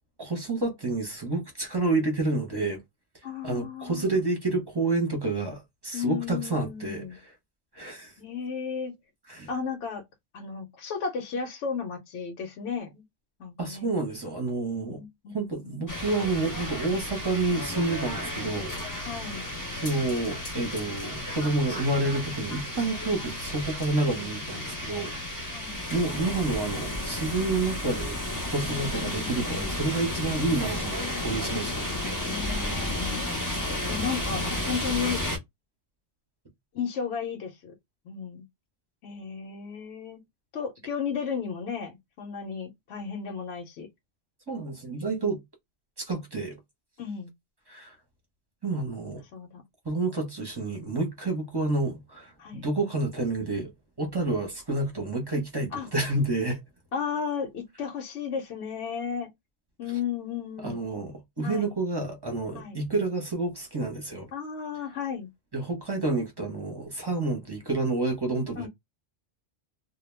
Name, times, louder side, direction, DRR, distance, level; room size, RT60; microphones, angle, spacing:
voice 1, 0.2-2.8 3.4-7.0 7.7-8.1 9.3-9.5 13.6-15.0 15.3-18.7 19.7-25.1 25.4-25.6 25.9-28.2 28.5-31.8 44.5-45.4 46.0-46.6 47.7-47.9 48.6-49.2 49.8-53.7 54.0-56.6 60.6-64.3 65.5-68.7, right 2 dB, 25° right, 0.7 m, -29 dB
voice 2, 3.2-4.2 5.9-7.2 8.2-8.9 9.5-10.0 10.3-13.0 13.4-13.9 14.8-15.9 19.0-19.4 25.5-25.8 28.7-29.7 32.3-33.4 33.9-35.2 36.7-37.7 38.0-38.4 39.0-40.2 40.5-43.9 47.0-47.3 49.3-49.6 52.4-52.7 55.7-55.9 56.9-59.3 59.8-60.8 61.4-61.7 62.5-62.8 64.3-65.3 68.6-68.7, left 6 dB, 70° left, 0.9 m, -34 dB
sound 1, 15.9-35.4, left 1 dB, 20° left, 0.6 m, -33 dB
2.2 x 2.1 x 3.1 m
omnidirectional pair, 1.2 m